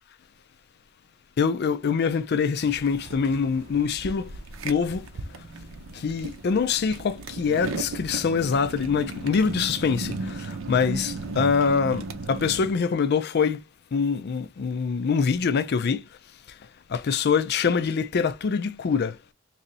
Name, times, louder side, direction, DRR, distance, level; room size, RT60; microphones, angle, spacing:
voice 1, 1.4-4.3 4.6-5.1 5.9-13.6 13.9-16.1 16.9-19.2, left 5 dB, 50° left, 0.4 m, -24 dB
sound 1, 2.6-12.7, right 3 dB, 70° right, 0.6 m, -36 dB
3.1 x 2.8 x 3.9 m
head